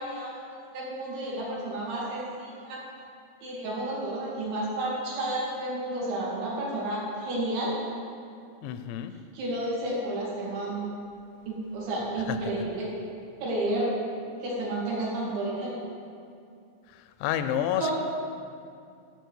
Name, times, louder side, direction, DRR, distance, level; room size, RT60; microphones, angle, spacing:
voice 1, 0.0-2.8 3.4-7.8 9.3-10.9 11.5-12.9 13.4-13.9 14.4-15.8 17.7-17.9, right 1 dB, 75° right, -6 dB, 4.8 m, -31 dB
voice 2, 8.6-9.1 17.2-17.9, left 10 dB, 85° left, 10 dB, 2.7 m, -28 dB
13.0 x 4.4 x 8.1 m, 2.4 s
omnidirectional pair, 5.2 m